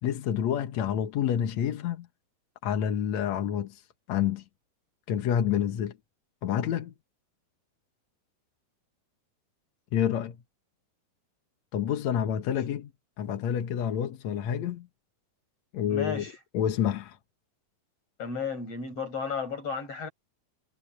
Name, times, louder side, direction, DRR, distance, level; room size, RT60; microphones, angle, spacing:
voice 1, 0.0-2.1 2.6-4.4 5.1-6.0 6.4-6.9 9.9-10.4 11.7-12.9 13.2-14.9 15.7-17.2, left 9 dB, 60° left, 2.0 m, -28 dB
voice 2, 15.9-16.3 18.2-20.1, left 5 dB, 40° left, 8.6 m, -33 dB
omnidirectional pair, 4.5 m